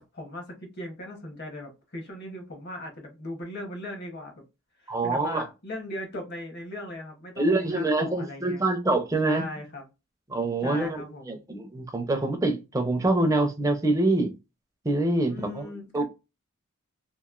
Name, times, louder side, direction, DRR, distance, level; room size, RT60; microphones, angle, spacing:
voice 1, 0.0-4.3 4.8-8.6 9.2-9.8 10.6-11.4 15.3-16.0, left 1 dB, 50° left, 1.0 m, -38 dB
voice 2, 4.9-5.4 7.4-9.4 10.3-14.3 14.8-16.0, right 2 dB, 15° right, 0.5 m, -25 dB
3.0 x 2.5 x 2.4 m
head